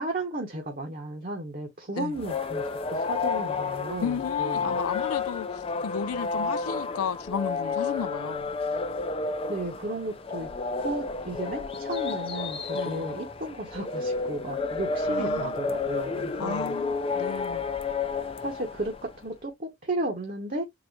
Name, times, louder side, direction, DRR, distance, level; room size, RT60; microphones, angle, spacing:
voice 1, 0.0-4.8 9.5-10.5 10.8-16.7 18.4-20.6, right 2 dB, 40° right, 0.9 m, -34 dB
sound 1, 2.1-19.2, left 4 dB, 25° left, 0.4 m, -31 dB
voice 2, 4.0-8.5 12.7-13.2 15.1-15.5 16.4-17.6, left 6 dB, 90° left, 0.4 m, -34 dB
4.0 x 2.0 x 4.5 m
head